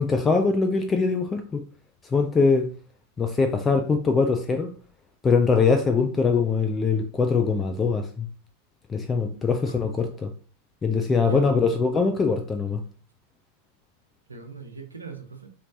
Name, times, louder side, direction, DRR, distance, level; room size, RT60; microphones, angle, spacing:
voice 1, 0.0-1.6 2.0-2.7 3.2-4.7 5.2-8.3 8.9-10.3 10.8-12.8, left 4 dB, 20° left, 0.4 m, -22 dB
voice 2, 9.3-9.8 11.1-11.6 14.3-15.5, right 4 dB, 80° right, 0.7 m, -41 dB
4.2 x 3.1 x 2.6 m
figure-of-eight pair, 90°, 0 cm